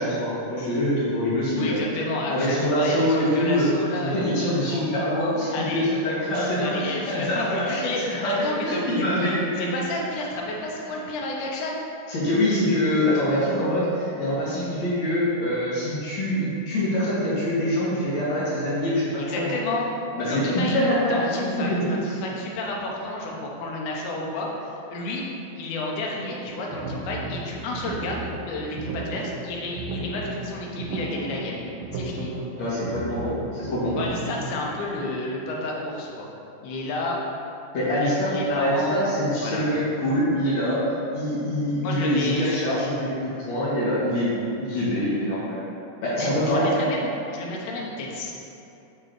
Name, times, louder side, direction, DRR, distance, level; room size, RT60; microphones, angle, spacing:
voice 1, 0.0-1.8 2.3-3.7 4.0-7.4 7.7-8.3 8.6-9.8 10.9-11.0 12.1-19.5 20.2-20.5 20.7-21.8 32.6-34.0 37.7-44.3 44.6-45.6 46.0-46.7, equal, 60° left, -9 dB, 2.7 m, -24 dB
voice 2, 1.5-4.4 4.6-4.8 5.5-11.8 19.3-19.9 20.3-31.6 31.9-32.3 33.9-36.3 36.6-37.2 38.0-39.0 39.4-39.7 41.8-42.7 44.7-44.8 46.2-48.3, left 2 dB, 75° left, -2 dB, 2.2 m, -31 dB
charcoal grey chords loop, 26.5-34.6, right 2 dB, 85° right, 2.1 m, -34 dB
8.6 x 3.2 x 3.8 m, 2.8 s
omnidirectional pair, 3.7 m